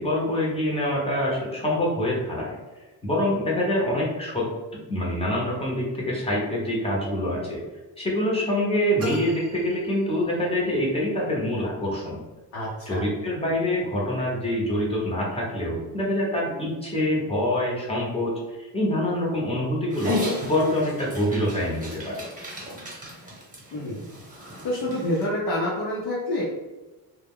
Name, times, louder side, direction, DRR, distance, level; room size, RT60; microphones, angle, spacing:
voice 1, 0.0-2.6 3.0-4.5 4.9-7.6 8.0-12.2 12.9-20.2 20.4-22.2, left 1 dB, 15° left, -4 dB, 0.9 m, -25 dB
sound 1, 9.0-10.7, right 1 dB, 35° right, 0.6 m, -37 dB
voice 2, 12.5-13.0 23.7-24.1 24.4-26.4, left 1 dB, 60° left, -5 dB, 0.8 m, -28 dB
Dog, 19.9-25.3, left 2 dB, 20° right, 1.0 m, -34 dB
2.2 x 2.2 x 3.5 m, 1.1 s
cardioid pair, 110°, 40 cm